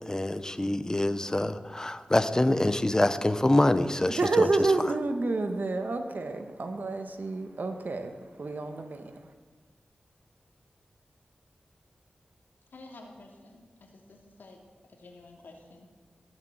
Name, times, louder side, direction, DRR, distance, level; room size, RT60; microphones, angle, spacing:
voice 1, 0.0-4.5, left 1 dB, 20° left, 1.0 m, -25 dB
voice 2, 4.2-8.1 8.4-9.0, right 3 dB, 65° right, 1.7 m, -29 dB
voice 3, 12.7-14.6 14.9-15.9, left 2 dB, 90° left, 2.8 m, -50 dB
21.0 x 7.8 x 8.1 m
wide cardioid pair, 65°, 3 cm